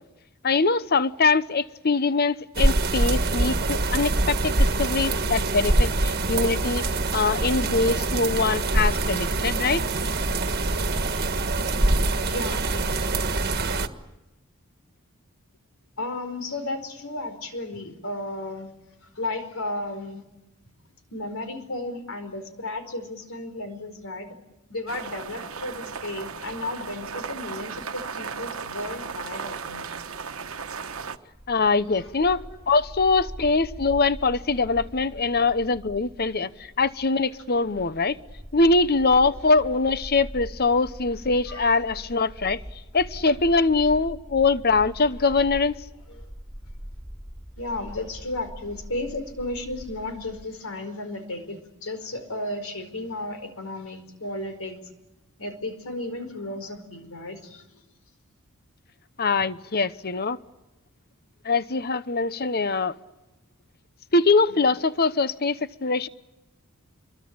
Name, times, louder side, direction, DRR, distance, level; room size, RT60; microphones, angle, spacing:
voice 1, 0.4-6.8 7.1-9.8 31.5-38.2 38.5-42.6 42.9-45.8 59.2-60.4 61.4-62.9 64.1-66.1, left 3 dB, 45° left, 0.9 m, -23 dB
sound 1, 2.5-13.9, right 2 dB, 45° right, 1.6 m, -24 dB
voice 2, 10.3-11.4 11.7-12.9 16.0-18.7 19.1-20.2 21.1-24.3 24.7-29.8 31.7-32.1 32.5-32.6 39.4-39.5 41.5-41.7 46.1-46.3 47.6-54.8 55.4-57.8 64.5-64.6, left 2 dB, 70° left, 4.9 m, -34 dB
sound 2, 24.9-31.2, right 5 dB, 70° right, 1.3 m, -36 dB
Bark, 31.3-50.4, equal, 5° left, 3.5 m, -42 dB
26.5 x 23.0 x 8.8 m
head